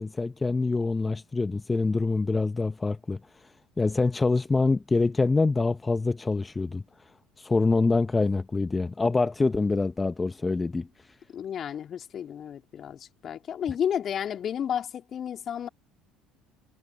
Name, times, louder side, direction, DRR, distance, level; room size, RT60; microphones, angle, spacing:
voice 1, 0.0-3.2 3.8-6.8 7.4-10.9, left 3 dB, 20° left, 1.1 m, -25 dB
voice 2, 11.3-15.7, left 9 dB, 45° left, 3.9 m, -32 dB
hypercardioid pair, 60°, 0 cm